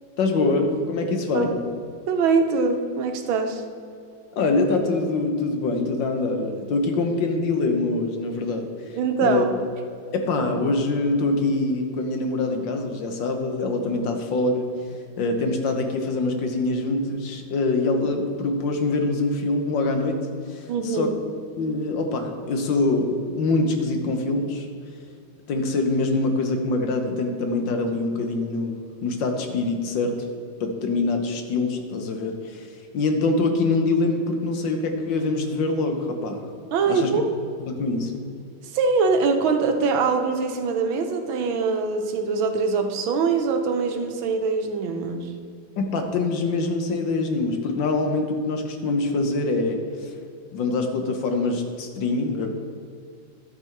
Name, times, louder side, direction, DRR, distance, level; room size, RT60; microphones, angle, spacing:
voice 1, 0.2-1.5 4.3-8.6 9.2-9.4 10.1-14.7 15.2-20.2 20.5-21.1 21.6-24.7 25.5-30.2 30.6-32.7 32.9-36.4 36.9-37.1 37.6-38.2 45.8-50.1 50.5-52.5, left 3 dB, 70° left, 4 dB, 1.6 m, -24 dB
voice 2, 2.1-3.6 8.9-9.5 20.7-21.1 36.7-37.4 38.7-45.3, right 4 dB, 80° right, 5 dB, 1.7 m, -23 dB
11.0 x 6.5 x 4.6 m, 2.4 s
omnidirectional pair, 2.2 m